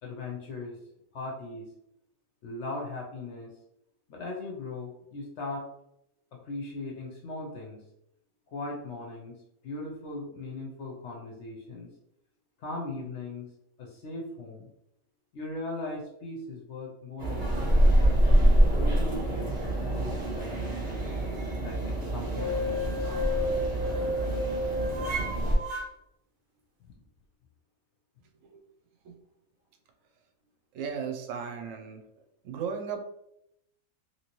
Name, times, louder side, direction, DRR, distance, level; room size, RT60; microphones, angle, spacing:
voice 1, 0.0-0.8 1.1-1.7 2.4-3.5 4.1-5.7 6.3-7.8 8.5-11.9 12.6-13.5 13.8-14.7 15.3-17.9 18.2-21.0 21.6-23.1 26.8-26.9, left 2 dB, 65° left, -1 dB, 0.8 m, -39 dB
sound 1, 17.2-25.5, right 1 dB, 25° right, 0.9 m, -26 dB
sound 2, 22.3-25.9, left 1 dB, 55° right, 0.5 m, -32 dB
voice 2, 30.7-32.0 32.4-33.0, right 6 dB, 70° right, 5 dB, 0.9 m, -36 dB
3.0 x 2.8 x 2.9 m, 0.80 s
omnidirectional pair, 1.5 m